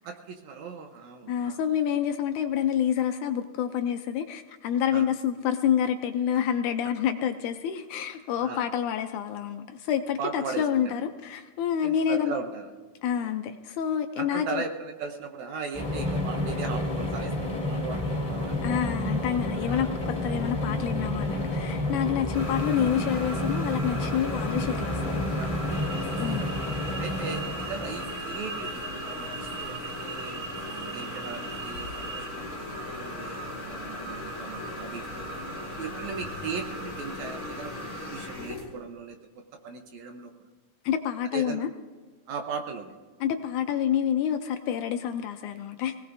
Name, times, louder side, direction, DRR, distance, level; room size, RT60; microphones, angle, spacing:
voice 1, 0.0-1.6 4.9-5.1 8.4-8.6 10.2-11.0 11.8-12.7 13.2-13.4 14.2-18.6 19.5-19.9 25.3-26.2 27.0-30.4 30.9-35.3 35.8-40.3 41.3-41.6 42.3-42.9, right 5 dB, 70° right, 4 dB, 2.0 m, -38 dB
voice 2, 1.3-12.3 13.0-14.6 18.6-25.4 26.2-26.5 40.9-41.7 43.2-46.0, left 9 dB, 75° left, 7 dB, 1.9 m, -28 dB
sound 1, 15.7-28.1, left 1 dB, 15° left, 1.7 m, -30 dB
sound 2, 22.3-38.7, left 1 dB, 35° left, 4.6 m, -37 dB
sound 3, 25.7-32.3, right 5 dB, 40° right, 2.0 m, -41 dB
23.5 x 18.0 x 2.7 m, 1.4 s
omnidirectional pair, 3.9 m